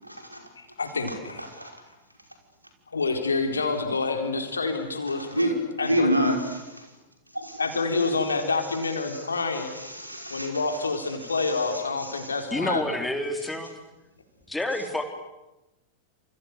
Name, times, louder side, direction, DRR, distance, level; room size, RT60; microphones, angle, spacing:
voice 1, 0.0-0.5 1.0-1.8 5.1-5.5 5.8-6.9 7.3-8.4 8.7-12.3, equal, 85° right, 4 dB, 5.3 m, -31 dB
voice 2, 0.6-1.5 2.9-6.1 7.6-9.7 10.3-12.9, left 3 dB, 75° left, 5 dB, 4.2 m, -28 dB
voice 3, 12.5-13.7 14.5-15.0, left 1 dB, 5° left, 6 dB, 4.0 m, -28 dB
29.0 x 28.0 x 6.9 m, 0.98 s
figure-of-eight pair, 90°, 0 cm